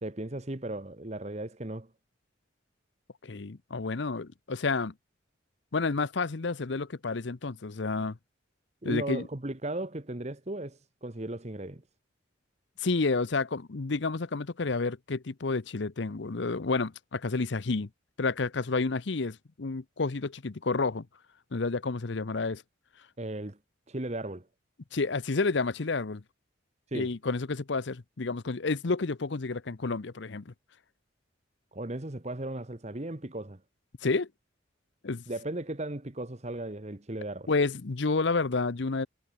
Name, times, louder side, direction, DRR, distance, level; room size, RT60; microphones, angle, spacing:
voice 1, 0.0-1.9 8.8-11.8 23.2-23.6 23.9-24.5 26.9-27.1 31.7-33.6 35.3-37.5, right 1 dB, 35° right, 1.2 m, -36 dB
voice 2, 3.2-4.9 5.7-8.2 8.8-9.2 12.8-17.9 18.2-21.0 21.5-22.6 24.9-26.2 26.9-30.5 34.0-34.3 35.0-35.2 37.5-39.1, left 3 dB, 65° left, 0.7 m, -30 dB
head